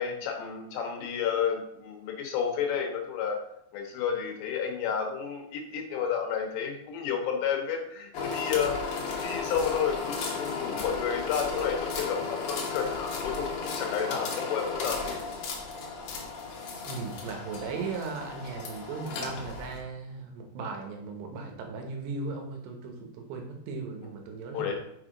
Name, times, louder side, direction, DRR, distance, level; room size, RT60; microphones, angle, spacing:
voice 1, 0.0-3.4 3.7-15.2 24.5-24.7, left 7 dB, 85° left, 3 dB, 3.2 m, -31 dB
sound 1, 8.1-19.8, left 4 dB, 65° left, 2.0 m, -35 dB
voice 2, 16.8-24.7, right 4 dB, 80° right, 3 dB, 3.1 m, -37 dB
7.0 x 4.9 x 3.7 m, 0.76 s
omnidirectional pair, 4.9 m